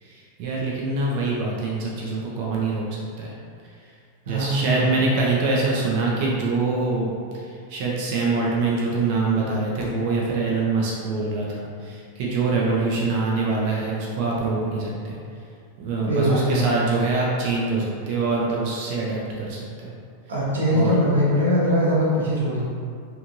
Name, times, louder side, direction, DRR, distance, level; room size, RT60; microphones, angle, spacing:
voice 1, 0.0-2.8 3.2-3.3 4.3-15.2 15.8-19.9 20.7-20.9, right 3 dB, 45° right, -4 dB, 0.5 m, -24 dB
voice 2, 4.3-5.1 16.1-16.7 20.3-22.6, equal, 70° right, -7 dB, 0.9 m, -21 dB
3.4 x 2.9 x 2.6 m, 2.3 s
figure-of-eight pair, 90°, 0 cm